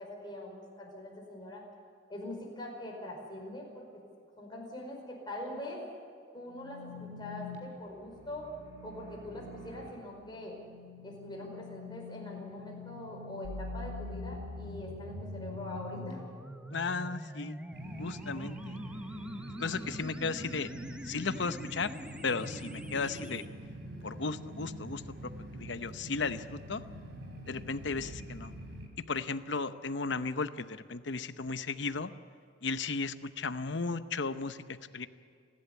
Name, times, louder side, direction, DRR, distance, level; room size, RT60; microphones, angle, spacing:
voice 1, 0.0-1.6 2.1-3.9 4.4-5.8 6.3-8.5 8.8-10.5 11.0-16.2, left 1 dB, 20° left, -1 dB, 5.1 m, -43 dB
sound 1, 6.5-16.1, left 5 dB, 90° right, 4.8 m, -47 dB
sound 2, 13.4-23.5, equal, 5° right, 0.9 m, -44 dB
voice 2, 16.7-17.6 18.0-18.8 19.6-20.7 21.1-21.9 22.2-23.4 24.0-25.0 25.5-26.8 27.5-28.5 29.1-32.1 32.6-35.1, left 4 dB, 65° left, 12 dB, 0.8 m, -35 dB
sound 3, 17.7-28.9, right 1 dB, 65° right, 4.1 m, -45 dB
29.5 x 11.5 x 8.4 m, 2.3 s
head